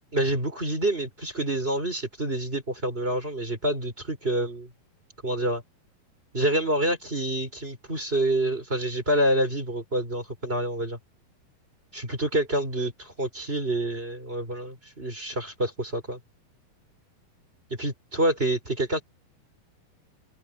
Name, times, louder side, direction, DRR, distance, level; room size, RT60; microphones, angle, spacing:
voice 1, 0.1-4.7 5.2-5.6 6.3-11.0 11.9-16.2 17.8-19.0, right 1 dB, 15° right, 4.2 m, -27 dB
omnidirectional pair, 4.6 m